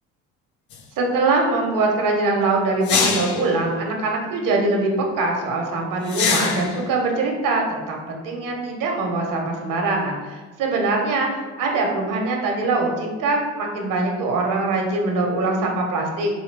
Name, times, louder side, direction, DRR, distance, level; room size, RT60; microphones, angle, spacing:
sound 1, 0.7-0.8 2.8-3.5 6.1-6.8, left 6 dB, 50° left, 0.7 m, -23 dB
voice 1, 1.0-16.3, right 3 dB, 60° right, 1 dB, 1.0 m, -23 dB
4.9 x 2.7 x 3.3 m, 1.3 s
hypercardioid pair, 65°, 37 cm